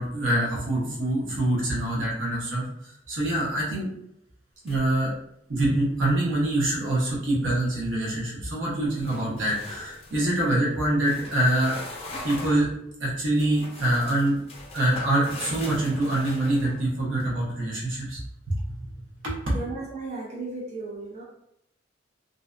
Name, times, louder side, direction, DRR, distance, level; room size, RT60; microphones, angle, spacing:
voice 1, 0.0-3.9 4.6-5.1 5.5-11.8 12.2-12.7 13.0-14.4 14.7-18.2 18.5-18.8 19.2-19.4, right 1 dB, 85° right, -5 dB, 0.8 m, -25 dB
sound 1, 4.7-5.1 5.5-5.9 9.0-10.3 11.0-12.7 13.4-17.2, left 2 dB, 30° left, 0.4 m, -41 dB
voice 2, 19.5-21.2, right 3 dB, 35° right, -5 dB, 0.5 m, -35 dB
2.5 x 2.2 x 2.4 m, 0.79 s
head